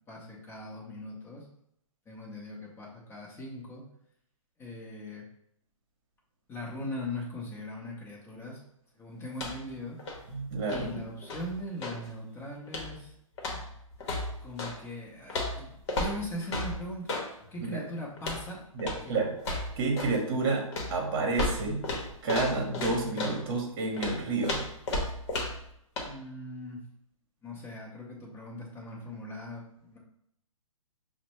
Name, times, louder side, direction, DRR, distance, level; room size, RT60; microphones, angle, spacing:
voice 1, 0.1-1.4 2.1-3.8 4.6-5.2 6.5-8.6 9.0-10.0 10.7-13.1 14.4-17.1 17.4-19.2 26.0-26.8 27.4-30.0, left 1 dB, 15° left, -3 dB, 0.8 m, -40 dB
sound 1, 9.3-9.7 10.0-12.1 12.7-13.0 13.4-14.8 15.3-17.3 18.2-18.5 18.8-19.1 19.4-20.2 20.7-23.4 24.0-25.7 26.0-26.1, left 2 dB, 50° left, 0.9 m, -34 dB
voice 2, 10.3-11.0 17.6-17.8 18.7-19.3 19.8-20.6 20.9-21.8 22.2-24.6, right 3 dB, 45° right, 1 dB, 1.0 m, -30 dB
5.1 x 2.1 x 3.0 m, 0.74 s
hypercardioid pair, 135°, 18 cm